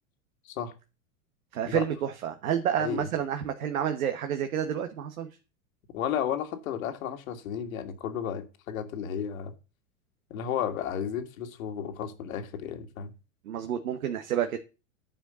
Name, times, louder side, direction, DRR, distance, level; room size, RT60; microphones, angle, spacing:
voice 1, 1.5-5.3 13.4-14.6, right 9 dB, 85° right, 1.3 m, -29 dB
voice 2, 2.8-3.1 5.9-9.5 10.3-13.1, left 8 dB, 75° left, 1.9 m, -33 dB
10.0 x 5.2 x 6.8 m
hypercardioid pair, 115°, 41 cm